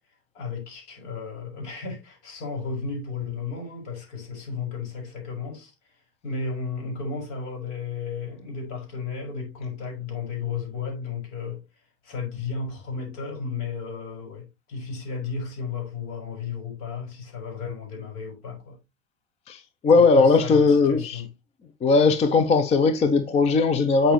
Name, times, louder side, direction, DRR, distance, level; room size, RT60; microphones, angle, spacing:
voice 1, 0.3-5.7 6.2-11.6 12.0-18.8 19.9-21.3, left 5 dB, 60° left, 5.4 m, -34 dB
voice 2, 19.5-21.2 21.8-24.1, left 4 dB, 20° left, 0.5 m, -19 dB
8.8 x 5.1 x 3.0 m
supercardioid pair, 150°, 37 cm